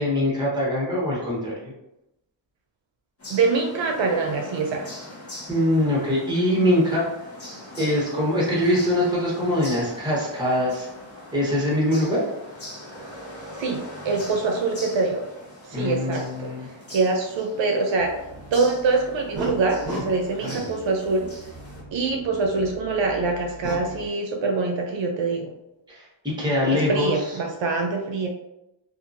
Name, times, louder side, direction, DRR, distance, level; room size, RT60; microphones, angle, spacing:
voice 1, 0.0-1.5 5.5-7.1 7.8-10.9 11.3-12.3 15.7-16.7 25.9-27.1, left 1 dB, 10° right, -5 dB, 1.1 m, -23 dB
sound 1, 3.2-21.8, left 1 dB, 30° left, 1.0 m, -41 dB
voice 2, 3.3-4.9 13.6-15.2 15.6-18.2 18.5-21.3 21.9-25.5 26.7-28.3, right 3 dB, 70° right, 2 dB, 0.6 m, -24 dB
sound 2, 18.0-24.1, equal, 50° right, 1.0 m, -37 dB
2.7 x 2.5 x 2.5 m, 0.89 s
wide cardioid pair, 95°, 46 cm